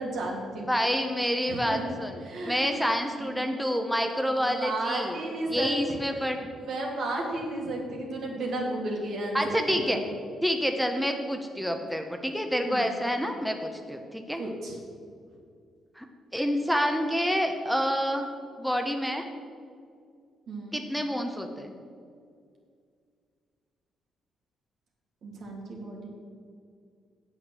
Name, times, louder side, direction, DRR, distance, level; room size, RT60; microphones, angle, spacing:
voice 1, 0.0-0.7 1.5-1.9 2.2-2.8 3.2-3.5 4.4-6.3 6.7-10.1 12.6-12.9 14.4-14.8 20.5-20.8 25.2-26.1, right 1 dB, 65° right, 0 dB, 2.4 m, -33 dB
voice 2, 0.7-5.2 5.5-6.4 9.3-10.0 10.4-14.4 16.0-16.1 16.3-18.3 18.6-19.3 20.7-21.7, equal, ahead, 4 dB, 0.9 m, -28 dB
7.8 x 7.2 x 7.7 m, 2.2 s
cardioid pair, 90°, 0 cm